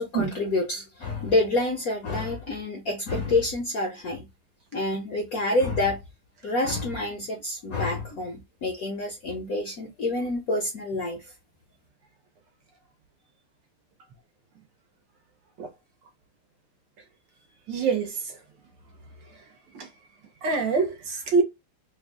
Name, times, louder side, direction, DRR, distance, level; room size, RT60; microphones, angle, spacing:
voice 1, 0.0-4.3 4.7-6.0 6.4-11.2, left 2 dB, 60° left, 0.9 m, -27 dB
voice 2, 17.7-18.4 19.7-19.9 20.4-21.4, right 4 dB, 65° right, 1.3 m, -25 dB
3.5 x 2.3 x 3.4 m
omnidirectional pair, 2.4 m